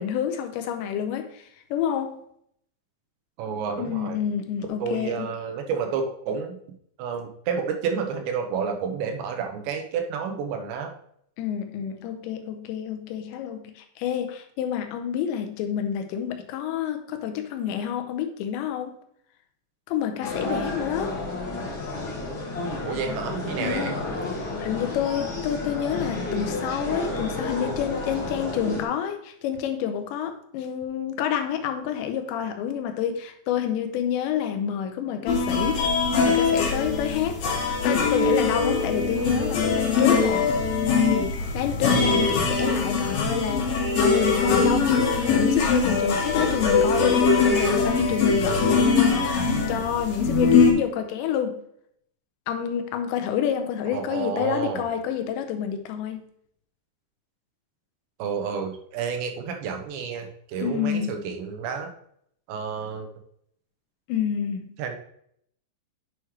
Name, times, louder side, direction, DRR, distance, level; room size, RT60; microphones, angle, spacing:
voice 1, 0.0-2.2 3.8-5.3 11.4-19.0 19.9-21.2 23.6-24.0 24.4-35.9 36.3-37.4 37.8-40.5 41.5-49.3 49.7-51.6 52.5-56.2 60.6-61.1 64.1-64.7, left 9 dB, 80° left, 3.0 m, -28 dB
voice 2, 3.4-4.2 4.8-6.6 7.0-10.9 22.8-23.9 53.9-54.8 58.2-61.9 62.5-63.1 64.8-65.0, right 6 dB, 80° right, 3.1 m, -30 dB
sound 1, 20.2-28.8, left 2 dB, 40° left, 1.9 m, -31 dB
sound 2, 35.3-50.7, left 4 dB, 60° left, 3.0 m, -22 dB
9.3 x 6.4 x 3.2 m
omnidirectional pair, 5.2 m